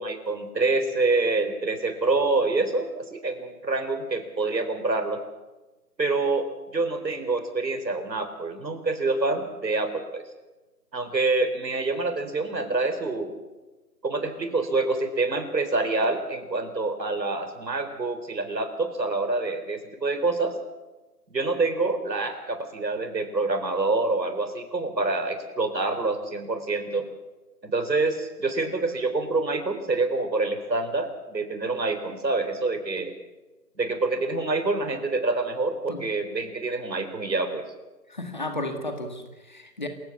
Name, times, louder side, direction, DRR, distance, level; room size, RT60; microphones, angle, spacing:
voice 1, 0.0-5.2 6.0-10.2 10.9-13.4 14.0-20.6 21.3-27.1 27.6-33.1 33.8-37.7, right 3 dB, 90° right, 8 dB, 3.9 m, -26 dB
voice 2, 38.1-39.9, left 1 dB, 30° left, 6 dB, 1.9 m, -33 dB
27.5 x 15.5 x 7.2 m, 1.1 s
figure-of-eight pair, 180°, 49 cm